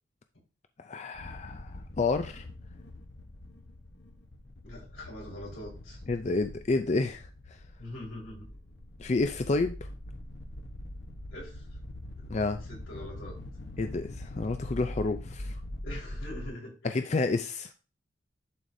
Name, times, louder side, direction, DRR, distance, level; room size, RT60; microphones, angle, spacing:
voice 1, 0.8-2.5 6.1-7.3 9.0-9.9 12.3-12.6 13.8-15.6 16.8-17.7, left 3 dB, 35° left, 0.4 m, -29 dB
sound 1, 1.1-16.5, left 1 dB, 60° left, 1.0 m, -43 dB
voice 2, 4.6-6.0 7.8-8.5 11.3-11.8 12.2-12.4 12.7-13.4 15.8-17.0, left 1 dB, 90° left, 4.2 m, -43 dB
11.0 x 4.9 x 2.7 m
head